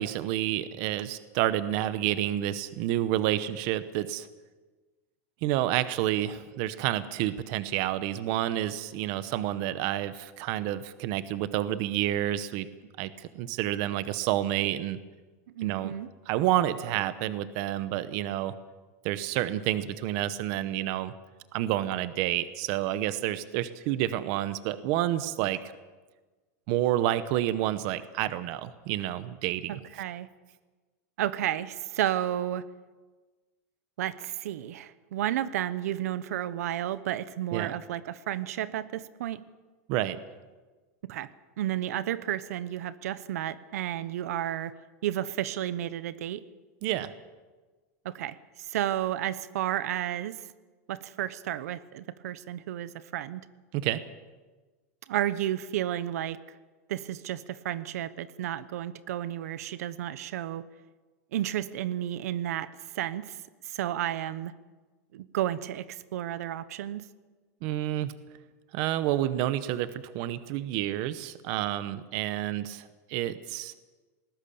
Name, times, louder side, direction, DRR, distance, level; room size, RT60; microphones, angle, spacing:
voice 1, 0.0-4.3 5.4-12.7 13.0-15.0 15.6-15.9 16.3-18.5 19.0-21.1 21.5-25.6 26.7-29.8 37.5-37.7 39.9-40.2 46.8-47.1 53.7-54.0 67.6-68.1 68.7-73.7, right 13 dB, 40° right, 14 dB, 0.9 m, -29 dB
voice 2, 15.5-16.1 29.7-30.3 31.2-32.6 34.0-39.4 41.1-41.3 41.6-44.7 45.0-46.4 48.0-50.4 50.9-53.4 55.1-56.4 56.9-60.6 61.3-62.7 62.9-63.4 63.6-64.5 65.1-67.0, right 12 dB, 75° right, 16 dB, 0.9 m, -32 dB
20.5 x 19.0 x 7.0 m, 1.3 s
supercardioid pair, 180°, 8 cm